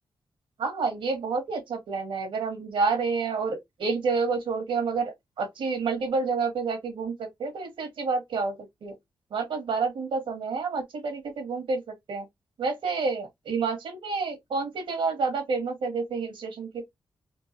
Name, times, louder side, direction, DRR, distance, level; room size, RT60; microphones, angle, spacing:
voice 1, 0.6-8.5 8.8-8.9 9.3-12.3 12.6-16.7, right 4 dB, 90° right, 2.0 m, -29 dB
4.5 x 2.4 x 3.0 m
wide cardioid pair, 100°, 8 cm